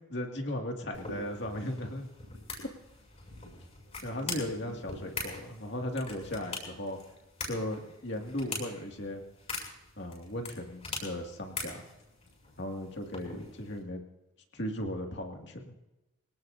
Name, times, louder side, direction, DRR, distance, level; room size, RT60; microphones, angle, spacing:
voice 1, 0.1-2.1 2.6-2.7 4.0-7.0 7.4-9.2 10.0-11.8 12.6-14.0 14.5-15.7, left 1 dB, 55° left, 2 dB, 2.3 m, -36 dB
sound 1, 0.9-13.8, left 3 dB, 30° left, 7.0 m, -43 dB
25.5 x 18.0 x 2.8 m, 0.96 s
head